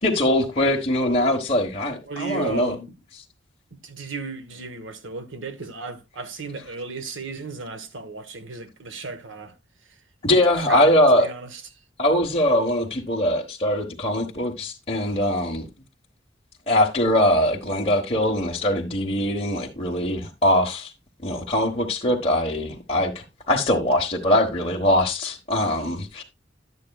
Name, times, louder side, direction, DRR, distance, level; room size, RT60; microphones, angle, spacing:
voice 1, 0.0-2.7 10.2-11.3 12.0-15.6 16.7-20.9 21.2-26.2, left 1 dB, 30° left, 1.2 m, -22 dB
voice 2, 2.1-2.9 3.7-9.6 10.6-11.6, right 4 dB, 90° right, 1.2 m, -35 dB
11.0 x 8.3 x 2.3 m
head